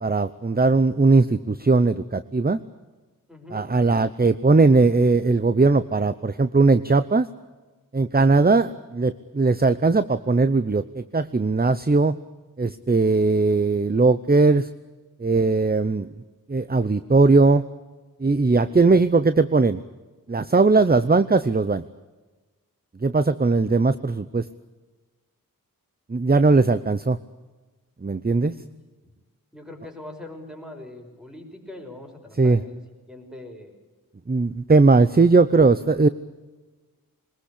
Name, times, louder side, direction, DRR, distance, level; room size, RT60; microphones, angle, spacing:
voice 1, 0.0-2.6 3.5-7.3 7.9-12.2 12.6-14.7 15.2-16.1 16.5-17.6 18.2-19.8 20.3-21.8 23.0-24.5 26.1-27.2 28.0-28.6 32.4-32.6 34.3-36.1, right 3 dB, 25° right, 14 dB, 0.7 m, -19 dB
voice 2, 3.3-3.7 18.5-19.1 28.5-28.8 29.0-29.1 29.5-32.8 33.1-33.8, left 1 dB, ahead, 3 dB, 5.8 m, -42 dB
22.5 x 20.5 x 8.4 m, 1.2 s
wide cardioid pair, 60°, 35 cm